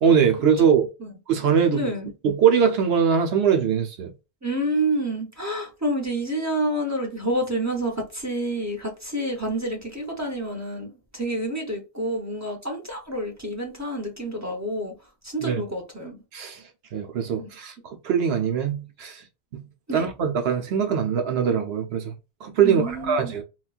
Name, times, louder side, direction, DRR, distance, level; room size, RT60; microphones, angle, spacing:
voice 1, 0.0-0.9 1.3-1.9 2.2-4.1 15.4-15.6 16.3-16.6 16.9-19.2 19.5-19.6 19.9-22.1 22.4-23.4, right 7 dB, 70° right, 0.9 m, -22 dB
voice 2, 1.7-2.1 4.4-14.9 15.2-16.2 17.4-17.5 19.9-20.1 22.6-23.3, right 1 dB, 15° right, 0.8 m, -28 dB
3.9 x 2.3 x 2.4 m
omnidirectional pair, 1.1 m